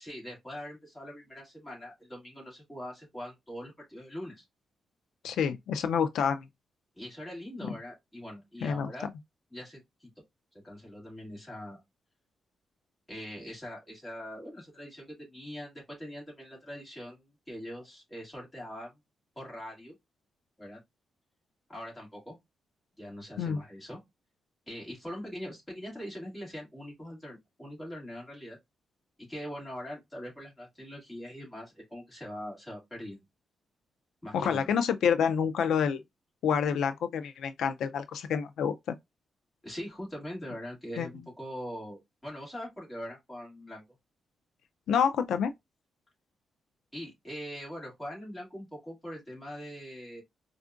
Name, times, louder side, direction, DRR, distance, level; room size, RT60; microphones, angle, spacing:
voice 1, 0.0-4.4 7.0-9.1 9.5-10.1 10.6-11.8 13.1-18.9 19.4-19.9 20.6-20.8 21.7-22.3 23.0-24.0 24.7-28.6 29.2-33.2 34.2-34.7 39.6-43.8 46.9-50.2, equal, 10° left, 2.0 m, -42 dB
voice 2, 5.2-6.4 8.6-8.9 23.4-23.6 34.3-36.0 36.4-39.0 41.0-41.1 44.9-45.5, left 7 dB, 85° left, 0.3 m, -28 dB
4.3 x 2.3 x 2.4 m
wide cardioid pair, 170°, 0 cm